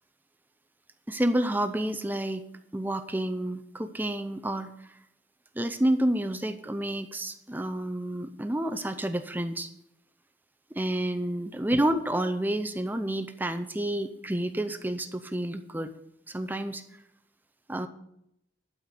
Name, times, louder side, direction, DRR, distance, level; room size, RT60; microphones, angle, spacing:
voice 1, 1.1-2.4 2.7-5.0 5.6-9.7 10.7-15.9 16.3-16.8 17.7-17.9, right 1 dB, 10° right, 8 dB, 0.5 m, -29 dB
12.0 x 5.0 x 7.9 m, 0.78 s
head